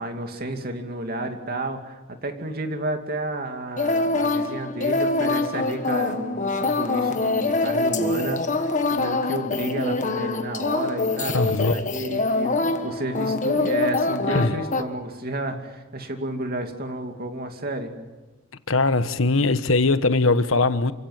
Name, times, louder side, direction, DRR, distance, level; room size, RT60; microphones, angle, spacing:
voice 1, 0.0-8.4 8.7-17.9, right 1 dB, 45° right, 2.6 m, -31 dB
sound 1, 3.8-14.8, left 3 dB, 40° left, 1.5 m, -25 dB
voice 2, 11.3-11.7 14.3-14.6 18.7-20.9, left 3 dB, 70° left, 1.2 m, -20 dB
28.5 x 16.5 x 9.3 m
head